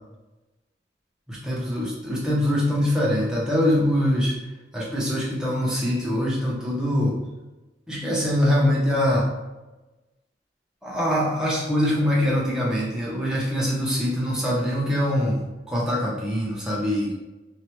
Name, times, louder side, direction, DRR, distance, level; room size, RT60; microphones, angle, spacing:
voice 1, 1.3-4.3 4.7-7.1 7.9-9.2 10.8-15.4 15.7-17.1, equal, 5° right, -6 dB, 0.8 m, -23 dB
3.3 x 2.4 x 2.9 m, 1.1 s
head